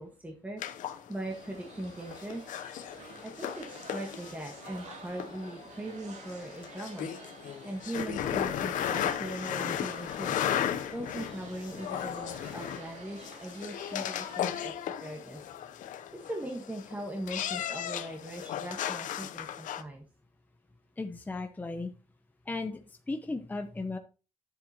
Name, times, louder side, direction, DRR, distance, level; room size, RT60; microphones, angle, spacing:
voice 1, 0.0-2.5 3.2-7.1 7.6-10.4 10.9-15.5 16.2-20.0, right 1 dB, 10° right, 1 dB, 1.4 m, -40 dB
sound 1, 0.6-19.8, left 10 dB, 85° left, 0.7 m, -36 dB
sound 2, 1.3-14.5, right 3 dB, 65° right, 2.7 m, -50 dB
voice 2, 21.0-21.9 22.5-22.8 23.1-24.0, left 3 dB, 15° left, 7 dB, 0.7 m, -35 dB
10.0 x 7.6 x 2.9 m, 0.33 s
cardioid pair, 135°, 13 cm